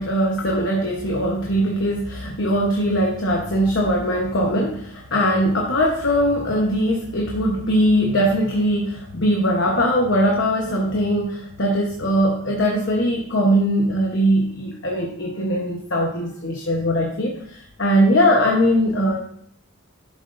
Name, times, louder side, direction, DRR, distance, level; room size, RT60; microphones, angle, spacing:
voice 1, 0.0-19.2, equal, 60° left, 0 dB, 1.2 m, -20 dB
12.0 x 7.2 x 2.7 m, 0.64 s
head